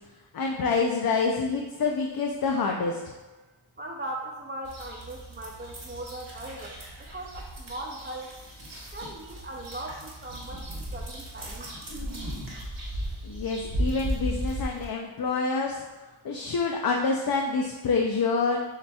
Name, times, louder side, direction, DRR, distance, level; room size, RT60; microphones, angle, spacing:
voice 1, 0.3-3.0 13.2-15.8 16.2-18.6, left 4 dB, 50° left, 1 dB, 0.5 m, -27 dB
voice 2, 3.8-6.7 7.0-8.4 8.9-11.9, right 1 dB, 25° right, 0 dB, 0.3 m, -39 dB
sound 1, 4.6-14.9, right 1 dB, 60° right, 1.3 m, -36 dB
7.2 x 2.8 x 2.3 m, 1.2 s
wide cardioid pair, 40°, 50 cm